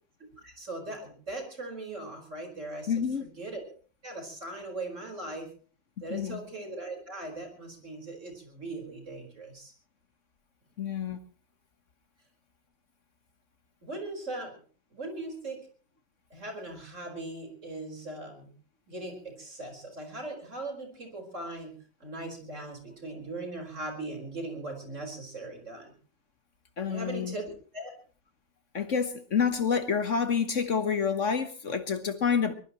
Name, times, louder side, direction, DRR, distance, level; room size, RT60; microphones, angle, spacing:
voice 1, 0.4-2.9 3.2-3.6 4.0-5.5 6.0-9.7 13.8-14.6 14.9-15.6 16.3-18.5 18.9-21.7 22.0-25.9 26.9-27.9, right 2 dB, 35° right, 5.0 m, -39 dB
voice 2, 2.9-3.3 6.1-6.4 10.8-11.2 26.8-27.3 28.7-32.5, left 6 dB, 45° left, 1.3 m, -28 dB
22.5 x 20.5 x 3.1 m
omnidirectional pair, 2.2 m